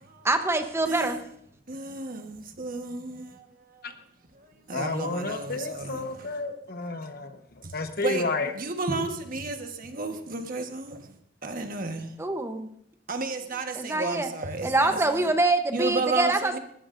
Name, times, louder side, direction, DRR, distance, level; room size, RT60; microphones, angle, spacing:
voice 1, 0.2-1.2 12.2-12.7 13.7-14.3 14.6-16.6, right 2 dB, 15° right, 0.8 m, -25 dB
voice 2, 0.9-1.2 1.7-3.4 4.7-6.3 7.6-7.7 8.0-11.0 11.4-12.1 13.1-14.7 15.7-16.6, right 3 dB, 50° right, 1.3 m, -32 dB
voice 3, 4.7-7.4 7.7-8.5 8.9-9.2, left 3 dB, 55° left, 1.1 m, -31 dB
20.5 x 13.5 x 2.6 m
head